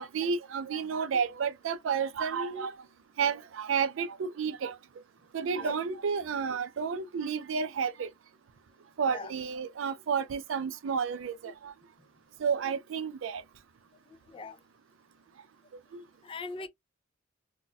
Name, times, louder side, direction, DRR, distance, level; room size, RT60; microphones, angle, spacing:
voice 1, 0.0-2.8 3.2-4.8 5.3-8.1 9.0-11.7 12.4-13.4 15.9-16.0, right 6 dB, 70° right, 0.4 m, -31 dB
voice 2, 14.3-14.6 16.2-16.7, left 3 dB, 25° left, 0.4 m, -40 dB
4.0 x 2.1 x 2.2 m
head